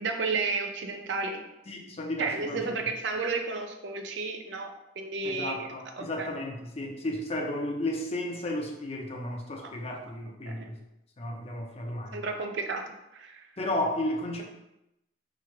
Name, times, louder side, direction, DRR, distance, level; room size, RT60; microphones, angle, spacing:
voice 1, 0.0-1.4 2.2-5.7 5.9-6.3 9.6-9.7 10.5-10.7 12.1-13.4, right 4 dB, 75° right, 4 dB, 0.5 m, -32 dB
voice 2, 1.7-2.6 5.2-10.8 11.2-12.2 13.6-14.4, left 1 dB, 35° left, 1 dB, 0.5 m, -33 dB
3.1 x 2.4 x 4.3 m, 0.88 s
head